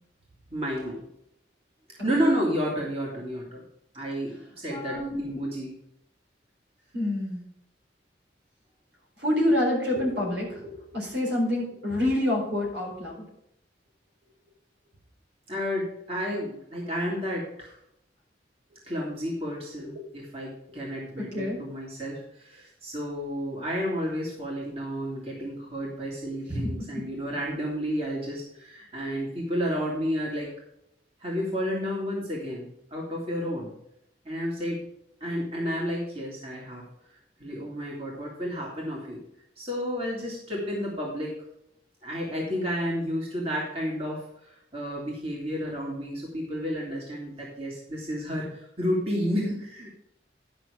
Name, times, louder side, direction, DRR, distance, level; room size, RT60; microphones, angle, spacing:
voice 1, 0.5-1.0 2.0-3.6 3.9-5.7 15.5-17.8 18.9-30.5 31.2-33.7 34.2-34.9 35.2-36.8 37.4-39.2 39.6-41.4 42.0-49.9, equal, 35° right, -3 dB, 2.4 m, -31 dB
voice 2, 4.7-5.4 6.9-7.4 9.2-13.2 21.2-21.6 26.5-27.0, left 1 dB, 80° right, -2 dB, 4.4 m, -27 dB
11.0 x 6.1 x 5.1 m, 0.77 s
head